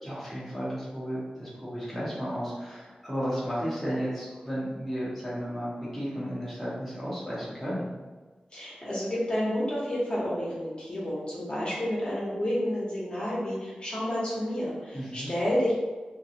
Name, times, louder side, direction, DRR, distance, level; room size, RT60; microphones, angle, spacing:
voice 1, 0.0-7.9 14.9-15.3, equal, ahead, -9 dB, 0.8 m, -33 dB
voice 2, 8.5-15.7, equal, 35° left, -7 dB, 0.9 m, -30 dB
2.4 x 2.2 x 2.8 m, 1.3 s
wide cardioid pair, 95°, 3 cm